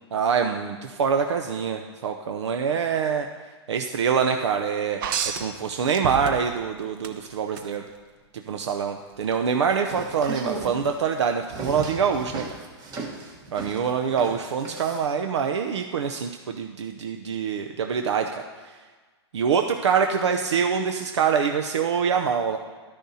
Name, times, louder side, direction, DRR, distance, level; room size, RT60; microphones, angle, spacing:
voice 1, 0.1-3.3 3.7-5.0 5.4-7.8 8.5-12.4 13.5-18.8 19.3-22.6, right 6 dB, 80° right, 5 dB, 0.6 m, -25 dB
sound 1, 5.0-6.6 7.0-7.7 9.2-9.4, right 7 dB, 50° right, 0.8 m, -29 dB
sound 2, 9.7-15.1, right 4 dB, 25° right, 1.3 m, -36 dB
12.0 x 10.0 x 2.8 m, 1.4 s
hypercardioid pair, 140°, 15 cm